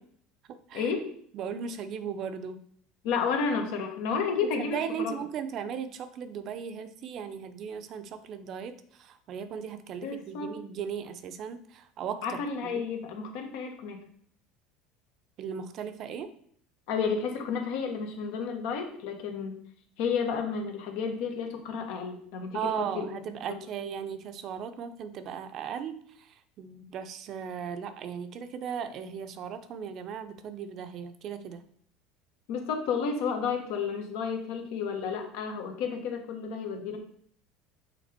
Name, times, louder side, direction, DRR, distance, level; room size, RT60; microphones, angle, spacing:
voice 1, 0.7-1.1 3.0-5.2 10.0-10.5 12.2-14.0 16.9-19.6 20.0-23.1 23.5-23.6 32.5-37.0, left 5 dB, 75° left, 4 dB, 1.4 m, -31 dB
voice 2, 1.3-2.6 4.6-12.9 15.4-16.3 22.5-31.6, right 7 dB, 50° right, 10 dB, 0.6 m, -37 dB
6.0 x 3.9 x 4.3 m, 0.62 s
supercardioid pair, 120°, 0 cm